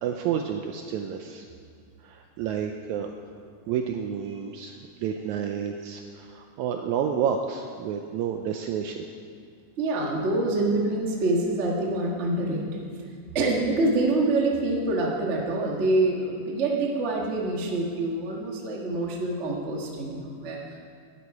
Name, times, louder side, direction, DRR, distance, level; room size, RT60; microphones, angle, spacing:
voice 1, 0.0-1.4 2.0-3.1 3.7-9.1, right 8 dB, 85° right, 5 dB, 1.7 m, -30 dB
voice 2, 9.8-12.9 13.3-20.8, right 2 dB, 65° right, -1 dB, 0.6 m, -26 dB
12.0 x 10.0 x 4.7 m, 2.2 s
omnidirectional pair, 3.8 m